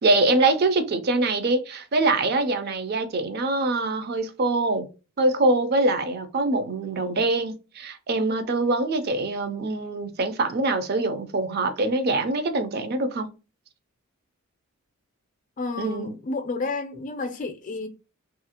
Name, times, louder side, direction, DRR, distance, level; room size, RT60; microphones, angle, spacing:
voice 1, 0.0-4.9 5.2-13.3 15.8-16.2, right 2 dB, 45° right, 0.4 m, -24 dB
voice 2, 15.6-17.9, left 3 dB, 35° left, 0.4 m, -31 dB
2.7 x 2.5 x 2.7 m
head